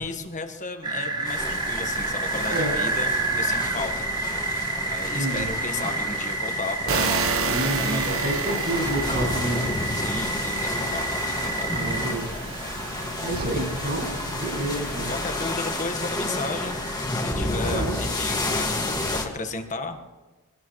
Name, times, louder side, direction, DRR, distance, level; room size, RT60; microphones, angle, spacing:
voice 1, 0.0-3.1 3.4-4.4 4.9-8.2 9.9-11.7 15.1-16.8 17.1-20.0, left 3 dB, 35° left, 6 dB, 1.4 m, -34 dB
sound 1, 0.8-17.1, right 3 dB, 20° right, 1.1 m, -30 dB
sound 2, 1.3-19.2, left 2 dB, 20° left, 1.9 m, -31 dB
voice 2, 2.3-2.7 5.1-5.5 7.4-10.3 11.7-12.4 13.2-15.1 17.6-18.1, right 1 dB, 50° right, -1 dB, 6.0 m, -30 dB
sound 3, 6.9-15.5, right 4 dB, 65° right, 1.1 m, -32 dB
25.0 x 18.0 x 3.2 m, 1.2 s
head